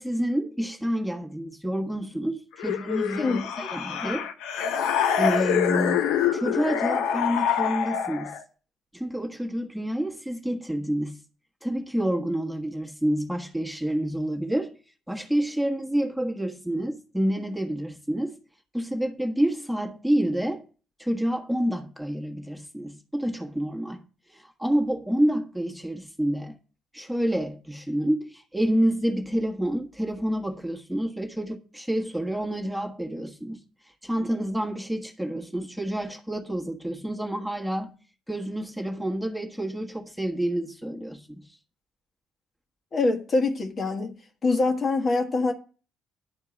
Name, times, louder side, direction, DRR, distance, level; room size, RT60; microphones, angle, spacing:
voice 1, 0.0-4.3 5.2-6.0 6.3-8.4 8.9-11.2 11.6-14.8 15.1-18.4 18.7-20.6 21.0-24.0 24.3-26.5 26.9-33.6 34.0-37.9 38.3-41.4, equal, ahead, 1.5 m, -28 dB
sound 1, 2.6-8.4, left 8 dB, 65° left, 0.8 m, -26 dB
voice 2, 42.9-44.2 44.4-45.5, left 3 dB, 40° left, 1.6 m, -24 dB
11.0 x 4.5 x 7.3 m
figure-of-eight pair, 45°, 0 cm